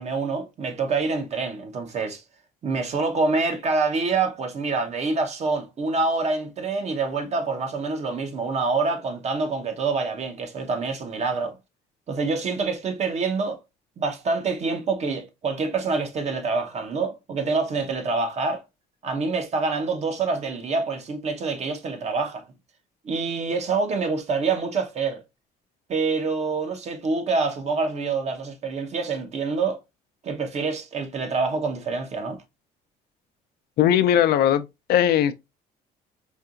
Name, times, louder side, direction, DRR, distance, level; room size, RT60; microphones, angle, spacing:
voice 1, 0.0-2.2 2.6-11.6 12.1-13.6 14.0-18.6 19.0-22.5 23.0-25.2 25.9-29.8 30.2-32.4, right 4 dB, 40° right, 0.9 m, -26 dB
voice 2, 33.8-34.6 34.9-35.3, left 10 dB, 70° left, 0.5 m, -18 dB
4.4 x 2.7 x 2.4 m
cardioid pair, 110°, 17 cm